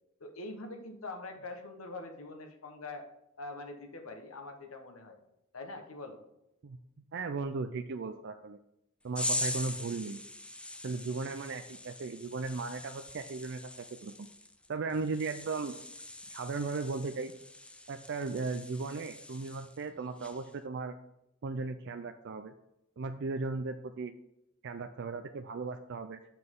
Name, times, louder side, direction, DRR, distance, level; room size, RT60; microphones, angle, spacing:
voice 1, 0.2-3.1 3.4-5.2 5.5-6.2, left 2 dB, 80° left, 5 dB, 1.2 m, -44 dB
voice 2, 7.1-8.6 9.0-10.2 10.8-14.3 14.7-15.7 16.3-17.3 17.9-20.9 21.4-22.5 23.0-24.1 24.6-26.3, right 4 dB, 60° right, 7 dB, 0.4 m, -36 dB
sound 1, 9.1-19.8 20.2-20.5, left 2 dB, 5° left, 0.4 m, -42 dB
9.7 x 5.8 x 3.7 m, 0.85 s
head